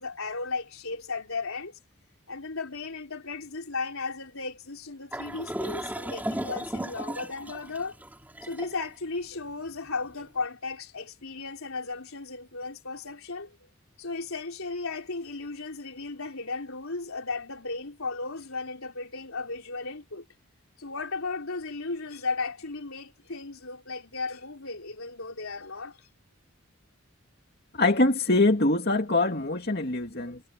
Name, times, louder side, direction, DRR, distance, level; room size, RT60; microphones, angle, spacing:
voice 1, 0.0-1.8 2.3-8.0 8.4-13.6 14.0-20.3 20.8-26.1, left 3 dB, 85° left, 3.7 m, -35 dB
sound 1, 5.1-10.3, right 1 dB, 10° right, 3.9 m, -36 dB
voice 2, 27.7-30.4, left 2 dB, 50° left, 2.3 m, -23 dB
head